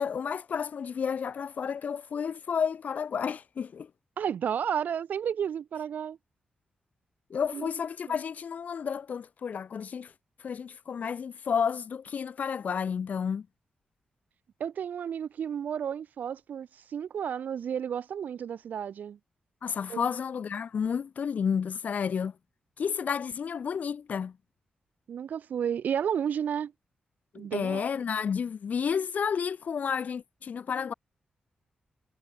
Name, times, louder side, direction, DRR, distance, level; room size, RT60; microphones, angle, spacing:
voice 1, 0.0-3.9 7.3-10.1 10.4-13.5 19.6-22.3 22.8-24.4 27.3-30.9, left 7 dB, 65° left, 7.1 m, -31 dB
voice 2, 4.2-6.2 7.5-7.7 14.6-19.2 19.9-20.1 25.1-26.7 27.4-27.9, right 8 dB, 80° right, 4.2 m, -32 dB
cardioid pair, 90°, 3 cm